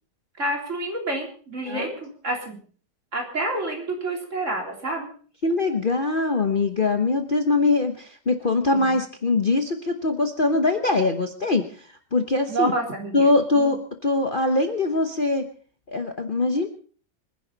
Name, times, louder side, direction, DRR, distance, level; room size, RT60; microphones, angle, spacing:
voice 1, 0.4-2.6 3.1-5.1 8.7-9.0 12.5-13.3 13.5-13.8, right 2 dB, 45° right, 1 dB, 3.9 m, -28 dB
voice 2, 5.4-12.7 13.1-15.5 15.9-16.7, left 3 dB, 35° left, 5 dB, 1.1 m, -22 dB
25.5 x 10.5 x 4.0 m, 0.44 s
omnidirectional pair, 1.8 m